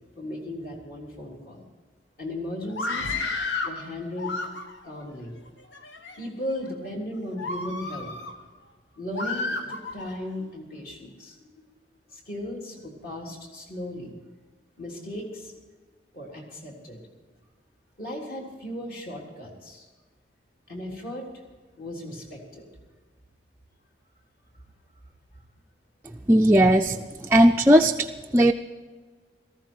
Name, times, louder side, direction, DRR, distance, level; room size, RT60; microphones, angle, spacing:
voice 1, 0.2-1.7 2.2-3.1 3.6-4.4 4.8-5.4 6.2-8.1 8.9-11.7 12.1-14.1 14.8-15.5 16.1-17.0 18.0-19.9 20.7-21.3 21.8-22.7, left 1 dB, 50° left, -2 dB, 3.7 m, -36 dB
Screaming, 2.7-3.8 4.2-4.9 5.6-6.2 6.7-6.9 7.4-8.4 9.1-10.2, left 3 dB, 80° left, 1.4 m, -31 dB
voice 2, 26.3-28.1 28.3-28.5, right 1 dB, 15° right, 2 dB, 0.4 m, -17 dB
18.0 x 14.5 x 4.6 m, 1.4 s
head